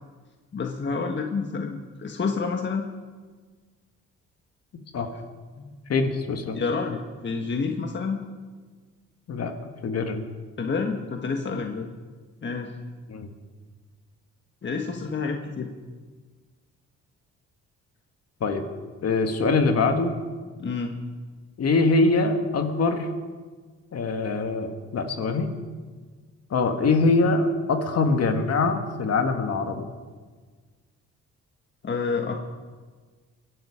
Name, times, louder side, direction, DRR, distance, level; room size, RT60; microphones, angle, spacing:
voice 1, 0.5-2.9 5.6-5.7 6.5-8.2 10.6-11.9 12.4-12.7 14.6-15.7 20.6-20.9 31.8-32.4, left 4 dB, 40° left, 3 dB, 1.5 m, -28 dB
voice 2, 5.9-6.6 9.3-9.5 9.8-10.3 13.1-13.3 18.4-18.6 19.0-20.2 21.6-23.1 23.9-25.5 26.5-29.9, left 3 dB, 55° left, 5 dB, 1.9 m, -23 dB
23.5 x 11.5 x 5.1 m, 1.5 s
cardioid pair, 90°, 30 cm